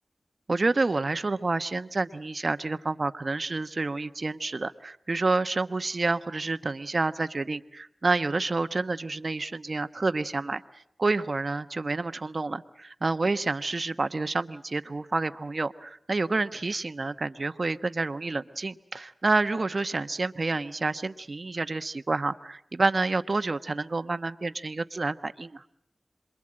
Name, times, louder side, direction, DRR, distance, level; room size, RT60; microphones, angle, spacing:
voice 1, 0.5-10.6 11.0-25.6, right 3 dB, 55° right, 11 dB, 1.0 m, -29 dB
27.5 x 22.0 x 8.8 m, 0.69 s
cardioid pair, 50°, 0 cm